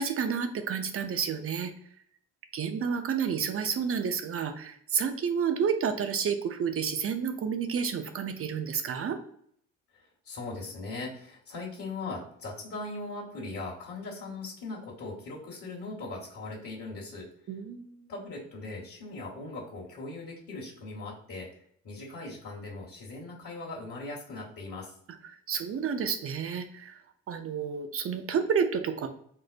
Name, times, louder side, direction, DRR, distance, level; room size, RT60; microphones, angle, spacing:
voice 1, 0.0-1.7 2.5-9.2 17.5-18.1 25.5-27.0 27.3-29.1, right 6 dB, 35° right, 7 dB, 0.6 m, -30 dB
voice 2, 9.9-17.3 18.1-21.6 21.8-24.9, left 3 dB, 50° left, -4 dB, 1.3 m, -39 dB
4.3 x 2.0 x 2.5 m, 0.64 s
hypercardioid pair, 50°, 40 cm